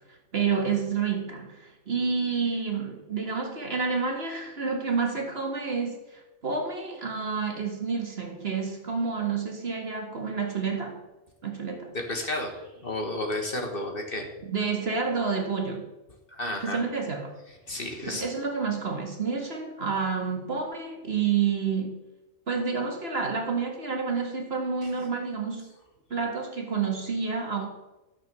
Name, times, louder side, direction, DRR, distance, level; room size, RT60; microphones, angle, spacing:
voice 1, 0.1-11.0 11.4-11.9 14.5-15.9 16.6-17.3 18.1-22.0 22.5-25.7 26.1-27.7, right 5 dB, 45° right, 3 dB, 1.9 m, -29 dB
voice 2, 11.9-14.3 16.3-16.8 17.7-18.3 24.8-24.9, left 1 dB, 40° left, 2 dB, 1.8 m, -32 dB
13.0 x 6.4 x 6.9 m, 1.0 s
omnidirectional pair, 1.5 m